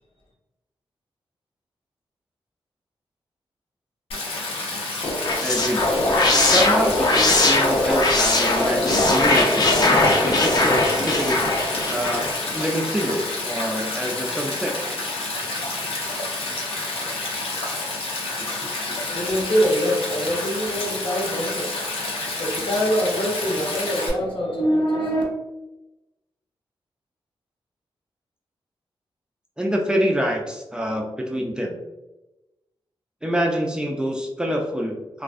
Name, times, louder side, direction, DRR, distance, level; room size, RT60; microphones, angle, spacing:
Stream, 4.1-24.1, left 2 dB, 85° left, 0.6 m, -29 dB
sound 1, 5.0-13.1, left 2 dB, 45° left, 0.5 m, -20 dB
voice 1, 5.4-5.8 6.5-9.7 10.1-11.4 11.9-12.2 12.5-14.8 18.9-19.0 29.6-31.8 33.2-35.2, equal, 10° right, 0 dB, 0.4 m, -26 dB
voice 2, 19.1-25.2, equal, 65° left, -3 dB, 0.8 m, -24 dB
2.3 x 2.3 x 2.5 m, 1.0 s
cardioid pair, 75°, 9 cm